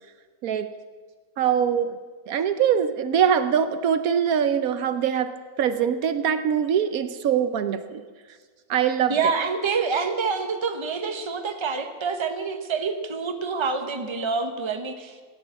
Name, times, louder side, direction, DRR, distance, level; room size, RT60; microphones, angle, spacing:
voice 1, 1.4-2.0 2.3-5.3 5.6-8.0 8.7-9.1, right 8 dB, 75° right, 11 dB, 1.1 m, -23 dB
voice 2, 9.1-15.2, right 5 dB, 20° right, 6 dB, 0.9 m, -27 dB
15.5 x 9.8 x 7.5 m, 1.5 s
omnidirectional pair, 1.6 m